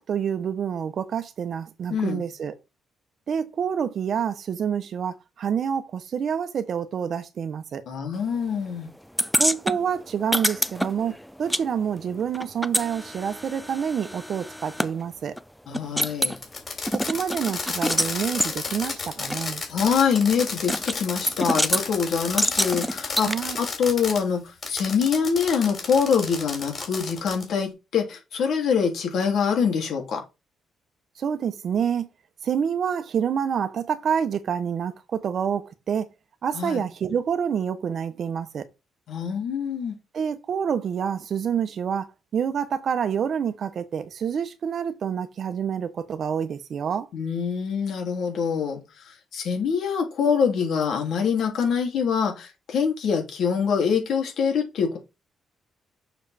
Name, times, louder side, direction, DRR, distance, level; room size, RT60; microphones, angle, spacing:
voice 1, 0.0-2.5 3.3-7.8 9.4-15.3 16.9-19.6 23.2-23.6 31.2-32.1 32.4-36.1 36.4-38.7 40.1-42.1 42.3-47.1, right 7 dB, 55° right, 1.0 m, -27 dB
voice 2, 1.9-2.2 7.9-8.9 15.7-16.3 19.7-23.3 23.6-30.2 36.5-36.8 39.1-40.0 47.1-48.8 49.0-55.0, left 6 dB, 70° left, 3.0 m, -24 dB
sound 1, 9.2-11.7 11.9-14.9 15.4-15.5 15.7-16.4 16.9-18.1 18.4-18.5 19.3-19.4 20.7-21.0 21.3-21.8 22.4-23.4, equal, ahead, 0.5 m, -26 dB
Fireworks, 16.4-24.2 24.6-27.5, left 4 dB, 45° left, 3.2 m, -32 dB
6.6 x 5.1 x 4.3 m
cardioid pair, 90°, 0 cm